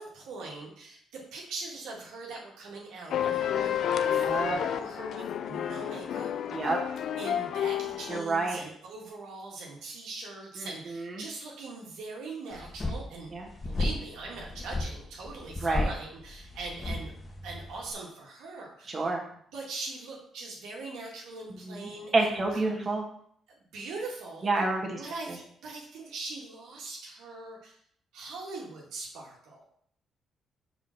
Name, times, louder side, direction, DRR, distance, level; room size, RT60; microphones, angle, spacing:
voice 1, 0.0-6.3 6.6-6.7 7.2-13.3 13.6-17.1 17.4-19.1 19.5-22.7 23.7-24.6 25.0-27.8 28.1-29.7, right 3 dB, 85° right, -2 dB, 1.9 m, -41 dB
sound 1, 3.1-8.2, left 9 dB, 70° left, 0.4 m, -30 dB
voice 2, 4.0-4.6 6.5-6.8 8.1-8.6 10.6-11.2 13.3-13.4 15.6-15.9 18.9-19.2 21.6-23.0 24.4-25.0, right 3 dB, 35° right, 0 dB, 1.6 m, -29 dB
sound 2, 12.5-17.9, left 2 dB, 30° left, 1.4 m, -34 dB
5.0 x 4.9 x 6.0 m, 0.65 s
cardioid pair, 90°, 0 cm